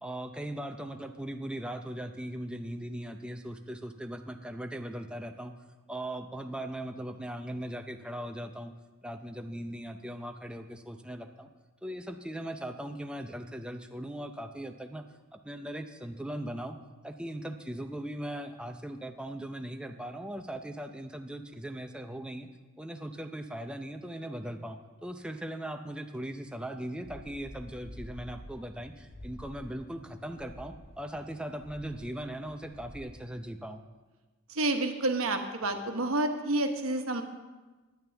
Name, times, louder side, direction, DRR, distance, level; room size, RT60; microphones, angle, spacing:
voice 1, 0.0-5.5 5.9-8.7 9.0-11.5 11.8-15.0 15.3-16.8 17.0-22.5 22.8-33.8, right 1 dB, 5° right, 5 dB, 0.6 m, -39 dB
sound 1, 27.0-33.1, equal, 45° left, 1.9 m, -49 dB
voice 2, 34.5-37.2, right 2 dB, 75° right, 5 dB, 1.1 m, -29 dB
16.0 x 10.5 x 3.4 m, 1.2 s
head